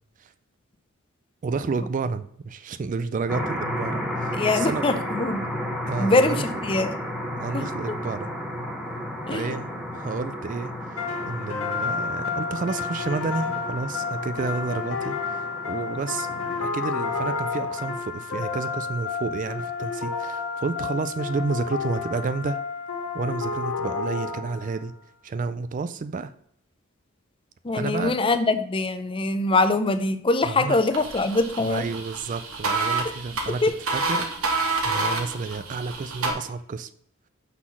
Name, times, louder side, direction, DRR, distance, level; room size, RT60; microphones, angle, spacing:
voice 1, 1.4-4.8 5.9-6.5 7.4-8.3 9.3-9.7 9.9-22.6 23.1-24.9 25.2-26.3 27.7-28.2 30.4-30.8 31.6-33.6 33.9-34.6 34.8-36.9, right 4 dB, 40° right, 12 dB, 0.3 m, -30 dB
sound 1, 3.3-18.0, equal, ahead, 1.0 m, -33 dB
voice 2, 4.3-5.5 6.0-6.9 7.5-7.7 9.3-9.6 27.6-31.9 33.6-33.8, left 2 dB, 25° left, 10 dB, 0.5 m, -23 dB
sound 2, 11.0-24.8, left 5 dB, 75° left, 1.6 m, -30 dB
sound 3, 30.9-36.3, right 3 dB, 80° right, 1.3 m, -28 dB
5.8 x 4.0 x 6.1 m, 0.66 s
head